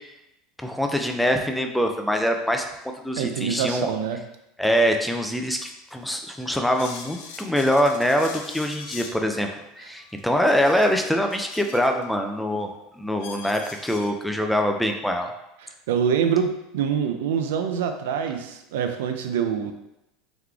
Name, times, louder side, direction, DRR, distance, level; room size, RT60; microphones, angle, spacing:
voice 1, 0.6-2.7 3.0-3.9 4.6-9.5 9.7-15.3, equal, ahead, 4 dB, 0.4 m, -24 dB
voice 2, 3.2-4.2 15.6-19.7, right 7 dB, 90° right, 7 dB, 0.5 m, -25 dB
sound 1, 5.6-5.7 6.2-9.2 10.0-12.1 12.6-12.7 13.2-14.1, left 5 dB, 70° left, 0.5 m, -42 dB
3.9 x 3.1 x 3.4 m, 0.89 s
supercardioid pair, 155°, 0 cm